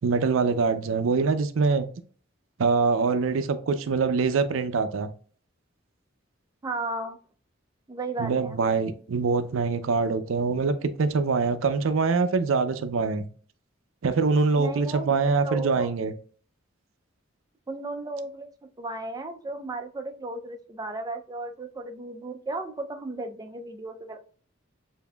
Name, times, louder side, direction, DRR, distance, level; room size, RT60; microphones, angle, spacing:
voice 1, 0.0-1.9 2.6-5.1 8.2-13.3 14.0-16.1, right 4 dB, 75° right, 0.5 m, -24 dB
voice 2, 6.6-7.2 7.9-8.6 14.6-15.9 17.7-18.5 18.8-24.2, right 2 dB, 20° right, 0.4 m, -34 dB
6.8 x 2.6 x 2.2 m
head